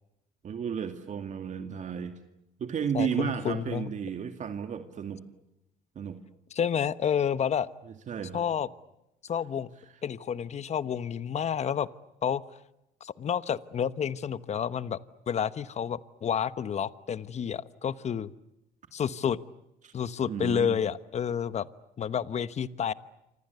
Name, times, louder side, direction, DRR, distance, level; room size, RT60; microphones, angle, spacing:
voice 1, 0.4-2.1 2.6-5.2 6.0-6.2 8.1-8.4 19.8-19.9 20.3-20.8, right 7 dB, 45° right, 7 dB, 2.3 m, -33 dB
voice 2, 2.9-3.9 6.5-7.7 8.3-8.7 9.3-9.7 10.0-11.9 12.2-12.4 13.0-15.0 15.3-18.3 18.9-19.4 19.9-21.7 22.0-22.9, left 8 dB, 40° left, 15 dB, 1.1 m, -30 dB
28.0 x 26.0 x 8.2 m, 0.88 s
cardioid pair, 110°, 17 cm